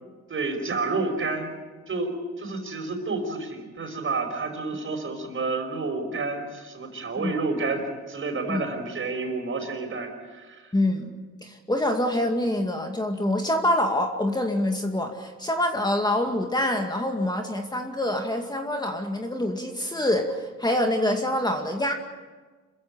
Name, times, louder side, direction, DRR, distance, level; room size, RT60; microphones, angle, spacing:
voice 1, 0.3-1.5 1.9-10.6, right 3 dB, 40° right, 5 dB, 5.5 m, -30 dB
voice 2, 10.7-11.1 11.4-21.9, left 1 dB, 15° left, 3 dB, 2.3 m, -26 dB
27.0 x 15.0 x 8.9 m, 1.4 s
cardioid pair, 90°, 30 cm